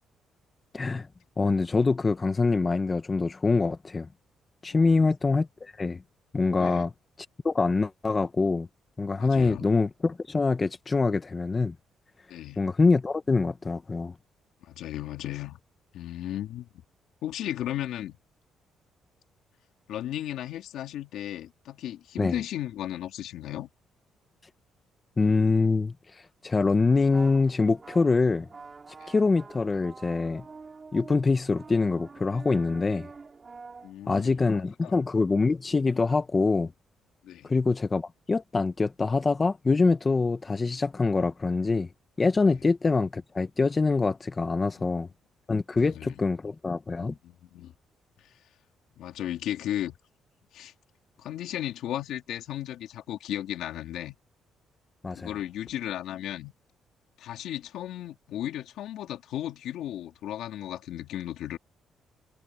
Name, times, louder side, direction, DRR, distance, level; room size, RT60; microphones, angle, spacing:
voice 1, 0.7-1.1 1.4-4.1 4.6-6.0 6.3-6.9 7.4-8.7 9.0-11.8 12.6-14.2 22.2-22.4 25.2-28.5 29.1-30.5 30.9-33.1 34.1-36.7 37.4-41.9 42.2-45.1 45.5-47.2 55.0-55.3, left 3 dB, 30° left, 1.4 m, -25 dB
voice 2, 4.7-5.1 6.6-6.9 9.2-9.7 12.3-12.6 14.6-15.6 15.9-16.7 17.2-18.2 19.9-23.7 29.0-29.1 33.8-34.3 34.8-35.0 37.2-37.5 45.7-46.1 46.9-47.7 49.0-49.9 50.5-50.7 51.2-54.2 55.1-56.5 57.2-61.6, left 12 dB, 80° left, 2.6 m, -35 dB
sound 1, 26.9-33.9, right 4 dB, 35° right, 5.0 m, -47 dB
cardioid pair, 90°, 0 cm